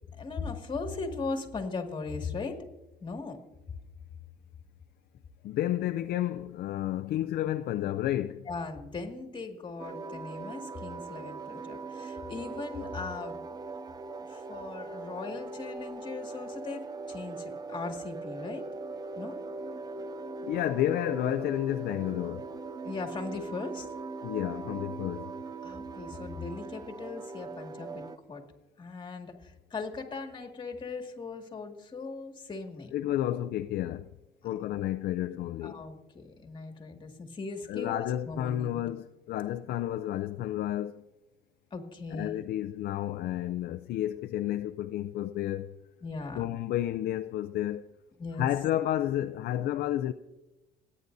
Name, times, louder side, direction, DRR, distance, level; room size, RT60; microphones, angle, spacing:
voice 1, 0.2-2.6 3.0-3.4 8.5-13.4 14.3-18.7 19.2-19.4 22.8-23.9 25.6-28.4 28.8-33.0 34.4-34.6 35.6-38.8 41.7-42.4 46.0-46.4 48.2-48.5, left 4 dB, 30° left, 2.1 m, -39 dB
voice 2, 5.4-8.4 20.4-22.5 24.2-25.3 32.9-34.1 34.4-35.8 37.7-41.0 42.1-45.7 46.3-47.8 48.3-50.1, left 12 dB, 65° left, 0.5 m, -31 dB
sound 1, 9.8-28.2, right 3 dB, 25° right, 0.5 m, -40 dB
26.5 x 9.6 x 2.7 m
cardioid pair, 110°, 17 cm